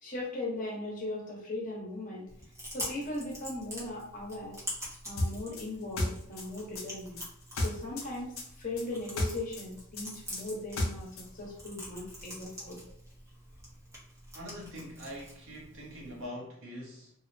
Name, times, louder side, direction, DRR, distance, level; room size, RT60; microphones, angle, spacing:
voice 1, 0.0-2.3 2.7-4.6 5.0-7.2 7.6-12.8, left 2 dB, 40° left, 0.9 m, -38 dB
Chewing mastication, 2.3-16.3, equal, 15° right, 0.7 m, -46 dB
sound 1, 5.2-8.1 8.4-11.3, left 1 dB, 75° left, 0.6 m, -33 dB
voice 2, 14.3-17.1, equal, 65° right, 0.8 m, -43 dB
2.7 x 2.0 x 2.6 m
head